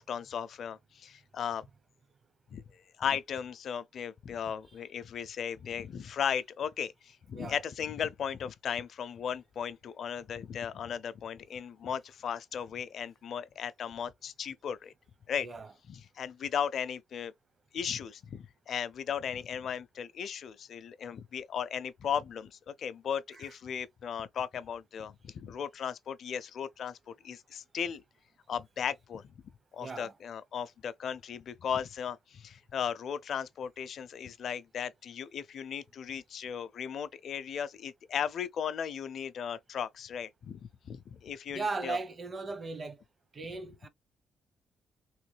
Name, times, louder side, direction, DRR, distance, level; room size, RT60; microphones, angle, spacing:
voice 1, 0.0-1.7 2.5-2.6 3.0-14.9 15.3-15.5 15.8-17.3 17.7-28.0 28.5-29.3 29.7-40.6 40.8-42.0, left 8 dB, 60° left, 0.5 m, -36 dB
voice 2, 29.8-30.1 41.5-43.0 43.3-43.9, right 3 dB, 35° right, 0.8 m, -37 dB
3.1 x 3.1 x 3.2 m
cardioid pair, 90°, 0 cm